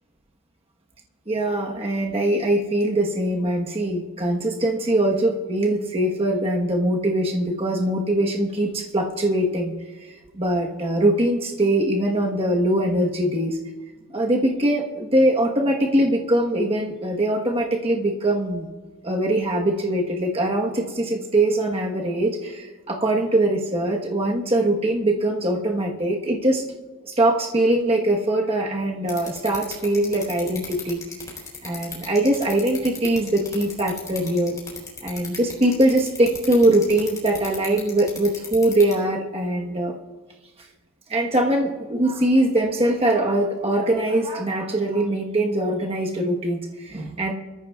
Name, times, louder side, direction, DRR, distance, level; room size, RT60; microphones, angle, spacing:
voice 1, 1.3-9.7 10.3-13.6 14.1-18.7 19.0-26.6 27.0-31.0 31.6-34.6 35.0-39.9 41.1-47.3, right 1 dB, 25° right, 1 dB, 1.1 m, -22 dB
sound 1, 29.1-38.9, left 5 dB, 15° left, 3.5 m, -35 dB
23.5 x 14.0 x 2.3 m, 1.3 s
head